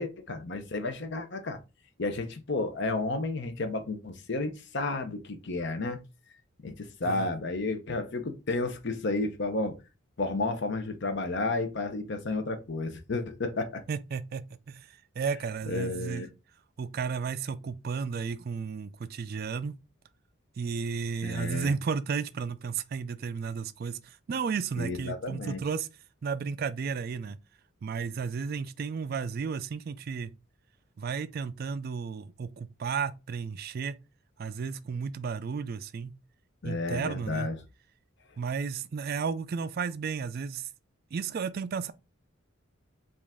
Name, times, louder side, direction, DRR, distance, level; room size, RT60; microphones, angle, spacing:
voice 1, 0.0-1.6 2.0-6.0 6.6-9.8 10.2-13.8 15.7-16.3 21.2-21.7 24.8-25.6 36.6-37.5, left 2 dB, 55° left, 0.7 m, -32 dB
voice 2, 13.9-16.2 16.8-19.8 20.6-25.9 26.2-27.4 27.8-30.3 31.0-34.0 34.4-36.1 36.6-37.5 38.4-40.7 41.1-41.9, right 5 dB, 45° right, 0.3 m, -33 dB
5.1 x 2.5 x 3.5 m
head